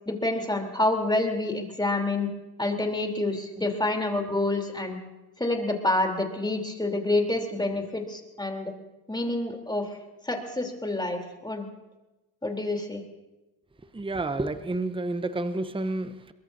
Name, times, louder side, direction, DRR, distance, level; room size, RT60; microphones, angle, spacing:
voice 1, 0.0-2.3 2.6-5.0 5.4-8.7 9.1-10.0 10.2-11.7 12.4-13.0, left 2 dB, 10° left, 2 dB, 3.5 m, -28 dB
voice 2, 13.9-16.3, right 2 dB, 10° right, 11 dB, 0.9 m, -30 dB
22.0 x 22.0 x 2.8 m, 1.0 s
supercardioid pair, 60°, 43 cm